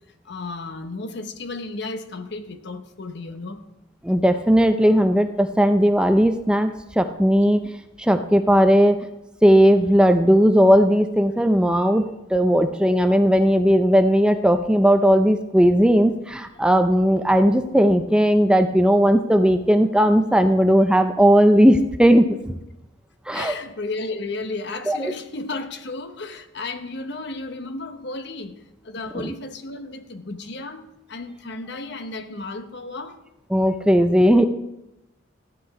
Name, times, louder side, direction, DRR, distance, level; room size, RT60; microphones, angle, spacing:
voice 1, 0.2-3.6 21.7-21.8 23.3-28.5 28.8-33.2, left 3 dB, 60° left, 1.1 m, -33 dB
voice 2, 4.0-7.6 8.0-9.0 9.4-12.0 12.3-22.6 23.3-23.5 24.9-25.1 29.1-29.3 33.5-34.4, equal, 5° right, 0.5 m, -17 dB
14.5 x 9.9 x 4.7 m
head